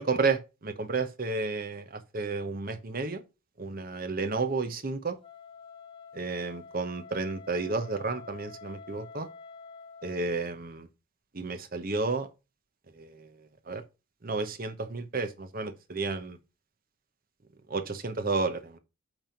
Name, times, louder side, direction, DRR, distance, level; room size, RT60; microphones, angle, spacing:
voice 1, 0.0-3.2 3.6-5.2 6.1-9.3 10.0-10.9 11.3-12.3 12.9-13.3 13.7-13.8 14.2-16.4 17.7-18.8, right 3 dB, 45° right, 1.0 m, -31 dB
Wind instrument woodwind instrument, 5.2-10.2, left 5 dB, 25° left, 1.2 m, -48 dB
9.1 x 3.5 x 5.8 m
head